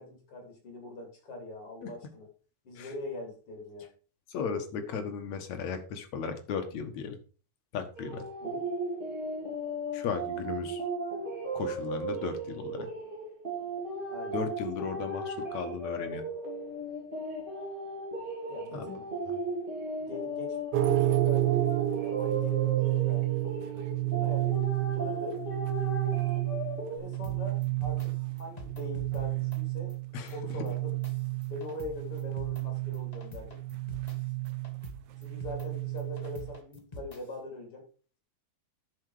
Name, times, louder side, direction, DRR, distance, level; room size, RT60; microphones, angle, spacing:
voice 1, 0.0-2.3 2.6-3.9 8.4-8.7 14.1-14.4 18.5-19.1 20.0-21.6 22.0-23.3 24.0-25.4 26.9-29.9 30.3-31.0 31.5-33.6 35.2-37.9, left 2 dB, 50° left, 2 dB, 4.1 m, -42 dB
voice 2, 4.3-7.2 7.7-8.3 9.9-10.8 11.5-12.9 14.3-16.2 18.7-18.9 30.1-30.3, left 6 dB, 70° left, 7 dB, 2.7 m, -35 dB
sound 1, 8.0-27.0, right 2 dB, 15° right, 3.3 m, -36 dB
sound 2, 20.7-36.6, right 18 dB, 80° right, 1.3 m, -31 dB
sound 3, 27.1-28.1 28.4-29.2 29.5-29.6 29.9-30.0 30.3-30.4 30.7-31.9 32.2-32.6 32.9-34.2 34.5-34.9 35.2-35.7 36.0-37.2, left 1 dB, 25° left, 0.9 m, -45 dB
10.0 x 6.7 x 4.9 m, 0.38 s
omnidirectional pair, 3.4 m